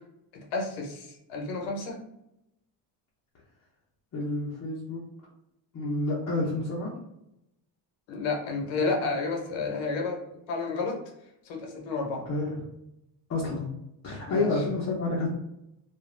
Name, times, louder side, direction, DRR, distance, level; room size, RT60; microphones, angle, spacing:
voice 1, 0.3-2.0 8.1-11.0 11.4-12.2 14.3-14.5, left 3 dB, 80° left, 1 dB, 0.9 m, -31 dB
voice 2, 4.1-5.0 5.7-6.9 12.3-12.6 13.3-13.7 14.0-15.3, left 2 dB, 35° left, -5 dB, 0.7 m, -29 dB
2.3 x 2.3 x 3.1 m, 0.83 s
cardioid pair, 140°, 45 cm